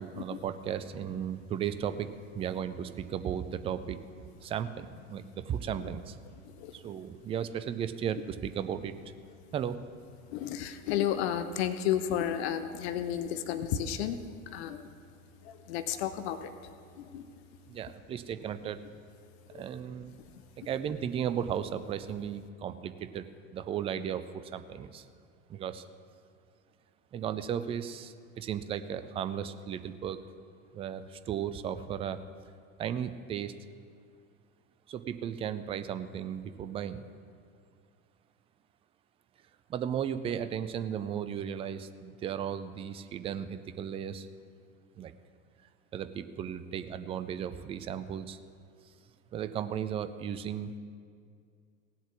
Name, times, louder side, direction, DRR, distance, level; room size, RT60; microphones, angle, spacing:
voice 1, 0.0-4.0 4.4-6.2 6.7-8.9 9.5-9.8 17.7-18.8 19.5-20.1 20.6-23.3 23.5-24.3 24.5-25.1 25.5-25.8 27.1-30.2 30.7-32.2 32.8-33.5 34.9-37.1 39.7-44.3 45.0-45.1 45.9-48.4 49.3-50.7, right 9 dB, 15° right, 12 dB, 0.4 m, -35 dB
voice 2, 10.3-14.2 14.5-14.9 15.4-16.5 17.0-17.2 19.5-19.6, left 10 dB, 50° left, 11 dB, 0.8 m, -32 dB
17.0 x 7.9 x 6.2 m, 2.2 s
figure-of-eight pair, 80°, 42 cm